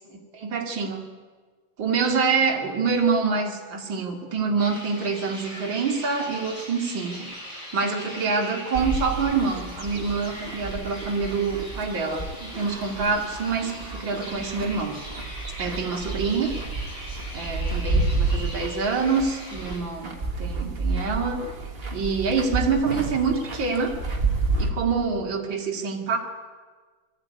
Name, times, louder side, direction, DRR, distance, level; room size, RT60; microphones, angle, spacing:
voice 1, 0.1-1.0 1.8-7.3 7.7-13.7 14.0-15.0 15.6-16.5 17.3-21.4 21.9-24.0 24.6-26.2, right 5 dB, 65° right, 0 dB, 2.8 m, -26 dB
sound 1, 4.6-19.8, equal, 30° left, 7.2 m, -40 dB
sound 2, 8.8-24.7, right 3 dB, 30° right, 1.9 m, -30 dB
20.5 x 14.0 x 9.5 m, 1.5 s
omnidirectional pair, 2.3 m